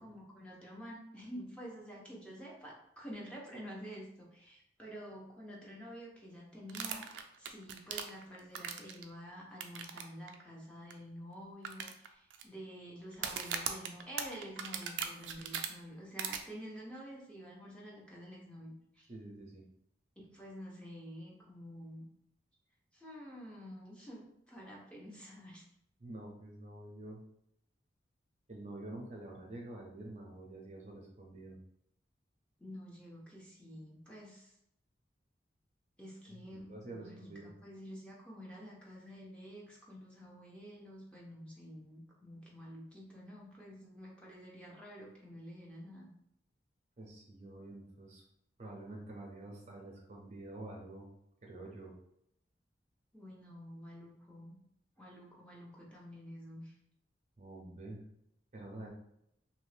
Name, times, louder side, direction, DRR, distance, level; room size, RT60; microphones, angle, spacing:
voice 1, 0.0-19.1 20.2-22.1 22.9-25.6 32.6-34.5 36.0-46.1 53.1-54.6 55.0-56.7, equal, 5° left, -4 dB, 0.7 m, -49 dB
sound 1, 6.7-9.0 9.6-10.0 10.3-10.4 10.9-11.0 11.6-12.4 13.1-15.7 16.2-16.4, right 8 dB, 90° right, 0.4 m, -38 dB
voice 2, 19.1-19.6 26.0-27.2 28.5-31.6 36.3-37.5 47.0-48.2 48.6-51.1 51.4-51.9 57.4-58.0 58.5-58.9, right 2 dB, 40° right, -1 dB, 0.5 m, -48 dB
2.8 x 2.5 x 3.2 m, 0.77 s
head